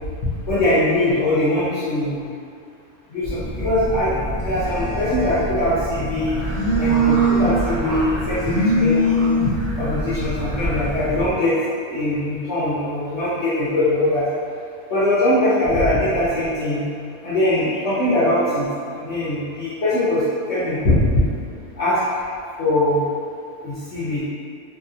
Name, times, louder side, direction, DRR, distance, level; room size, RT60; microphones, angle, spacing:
voice 1, 0.5-2.2 3.1-6.4 6.8-9.3 9.8-11.6 11.9-14.2 14.9-16.8 17.2-18.7 18.9-20.2 20.5-21.2 21.8-22.0 22.6-23.1 23.6-24.2, left 1 dB, 60° left, -12 dB, 0.8 m, -21 dB
Telephone, 3.2-11.3, right 1 dB, 30° right, 0.5 m, -23 dB
sound 1, 6.1-11.2, right 1 dB, 75° right, 1.1 m, -34 dB
2.6 x 2.3 x 2.6 m, 2.4 s
omnidirectional pair, 1.6 m